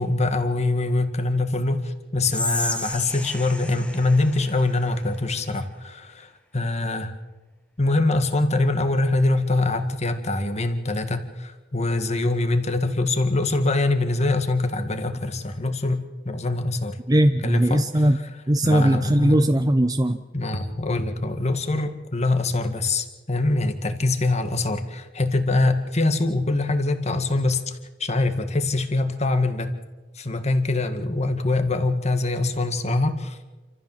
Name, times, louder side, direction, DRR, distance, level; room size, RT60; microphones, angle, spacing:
voice 1, 0.0-7.1 7.8-17.0 17.4-18.3 18.6-19.5 20.3-29.7 30.2-33.4, left 2 dB, 40° left, 8 dB, 1.9 m, -24 dB
Whispering, 2.3-5.5, left 1 dB, 5° left, 1.2 m, -32 dB
voice 2, 17.1-18.2 18.5-20.2, right 1 dB, 20° right, 7 dB, 0.7 m, -19 dB
28.0 x 14.5 x 7.4 m, 1.2 s
head